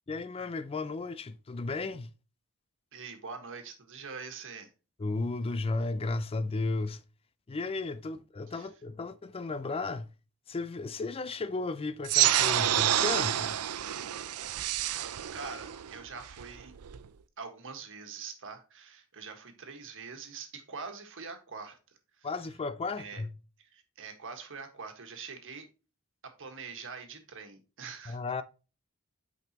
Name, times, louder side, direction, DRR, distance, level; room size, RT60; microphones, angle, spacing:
voice 1, 0.1-2.1 5.0-7.0 7.5-10.1 10.5-13.6 22.2-23.4 28.1-28.4, left 3 dB, 25° left, 0.4 m, -34 dB
voice 2, 2.9-4.7 8.5-8.7 15.0-16.7 17.4-21.8 22.2-22.3 23.0-23.2 23.6-25.7 26.4-28.2, right 5 dB, 60° right, 1.6 m, -44 dB
sound 1, 12.0-17.1, right 12 dB, 80° right, 0.5 m, -28 dB
8.7 x 5.2 x 2.9 m
head